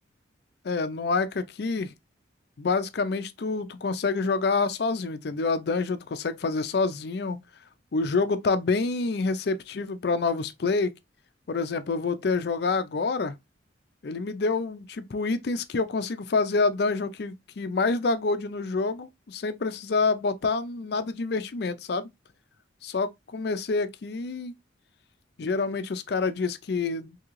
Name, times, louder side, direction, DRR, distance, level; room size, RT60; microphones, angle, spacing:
voice 1, 0.6-1.9 2.6-7.4 7.9-10.9 11.5-13.4 14.0-22.1 22.8-24.5 25.4-27.2, left 4 dB, 55° left, 0.4 m, -27 dB
3.6 x 2.8 x 3.0 m
head